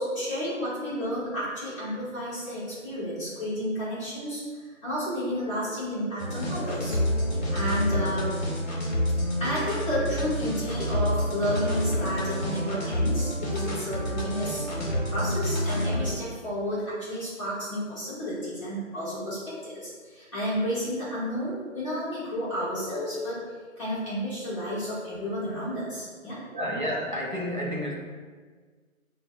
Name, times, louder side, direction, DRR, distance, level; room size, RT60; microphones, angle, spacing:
voice 1, 0.0-7.0 7.5-8.3 9.4-14.6 15.1-23.4 23.8-26.4, equal, 25° left, -11 dB, 1.2 m, -31 dB
sound 1, 6.2-16.2, equal, 50° left, 1.1 m, -28 dB
voice 2, 26.5-27.9, equal, 40° right, -3 dB, 0.5 m, -30 dB
6.4 x 2.1 x 2.4 m, 1.5 s
figure-of-eight pair, 165°, 41 cm